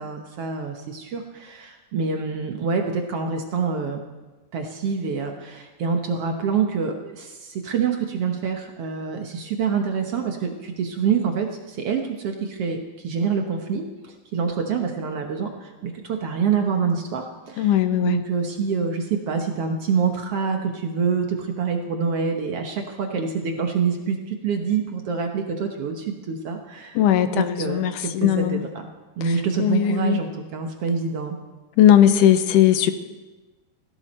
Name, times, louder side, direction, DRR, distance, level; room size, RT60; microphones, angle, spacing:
voice 1, 0.0-4.0 4.5-27.0 27.3-28.9 29.2-31.4, right 6 dB, 65° right, 4 dB, 1.6 m, -26 dB
voice 2, 17.6-18.2 27.0-28.6 29.6-30.2 31.8-32.9, left 11 dB, 75° left, 10 dB, 2.2 m, -18 dB
17.5 x 16.0 x 4.3 m, 1.2 s
omnidirectional pair, 4.0 m